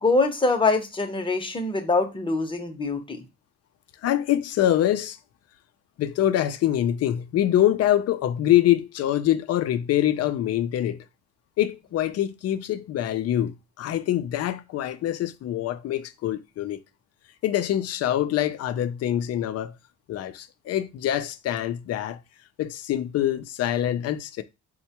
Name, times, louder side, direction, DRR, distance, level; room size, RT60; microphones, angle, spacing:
voice 1, 0.0-3.2, left 3 dB, 15° left, 0.8 m, -24 dB
voice 2, 4.0-5.2 6.0-11.0 11.6-16.8 17.4-19.7 20.1-22.2 22.6-24.4, left 12 dB, 55° left, 0.4 m, -24 dB
4.3 x 2.2 x 2.8 m
cardioid pair, 90°, 30 cm